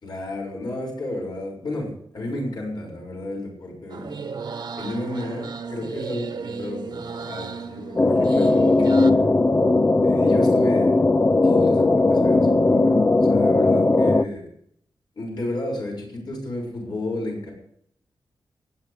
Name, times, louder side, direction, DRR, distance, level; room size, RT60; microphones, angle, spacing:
voice 1, 0.0-4.2 4.8-9.3 10.0-11.0 11.4-14.5 15.2-17.5, left 1 dB, 60° left, 0 dB, 6.5 m, -32 dB
sound 1, 3.9-9.1, right 5 dB, 60° right, 1.4 m, -34 dB
sound 2, 8.0-14.2, left 2 dB, 20° left, 0.5 m, -18 dB
29.0 x 10.5 x 3.5 m, 0.70 s
wide cardioid pair, 160°, 8 cm